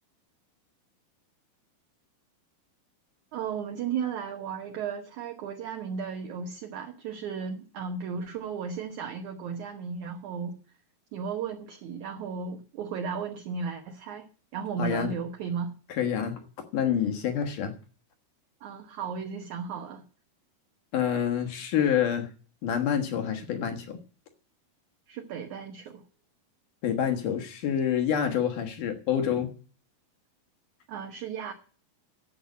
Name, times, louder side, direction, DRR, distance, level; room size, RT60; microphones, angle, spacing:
voice 1, 3.3-10.6 11.1-15.7 18.6-20.0 25.1-26.0 30.9-31.5, right 6 dB, 65° right, 4 dB, 2.0 m, -35 dB
voice 2, 14.8-15.1 15.9-16.4 16.7-17.7 20.9-22.3 22.6-24.0 26.8-29.5, left 8 dB, 60° left, 5 dB, 2.6 m, -27 dB
10.5 x 7.8 x 9.4 m, 0.40 s
omnidirectional pair, 4.6 m